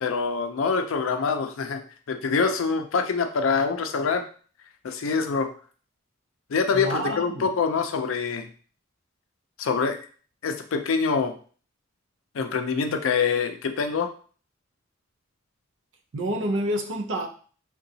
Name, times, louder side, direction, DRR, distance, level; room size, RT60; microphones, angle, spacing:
voice 1, 0.0-1.8 2.1-4.2 4.8-5.5 6.5-8.5 9.6-10.0 10.4-11.3 12.3-14.1, left 5 dB, 80° left, 0.4 m, -25 dB
voice 2, 6.7-7.5 16.1-17.3, right 1 dB, 65° right, 0.5 m, -28 dB
3.7 x 2.3 x 2.7 m
head